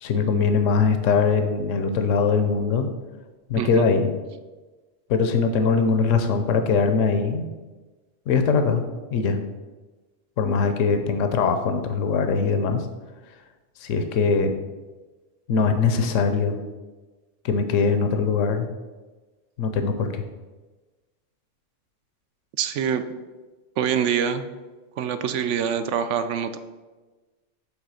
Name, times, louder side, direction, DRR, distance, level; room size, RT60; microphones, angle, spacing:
voice 1, 0.0-2.9 3.5-4.1 5.1-7.5 8.3-8.8 9.1-9.4 10.4-12.8 13.8-14.5 15.5-16.6 17.4-18.7 19.6-20.2, left 5 dB, 80° left, 7 dB, 1.0 m, -21 dB
voice 2, 3.6-3.9 22.6-23.0 23.8-24.4 25.0-26.6, right 8 dB, 75° right, 10 dB, 0.9 m, -25 dB
7.4 x 3.5 x 6.3 m, 1.2 s
omnidirectional pair, 1.3 m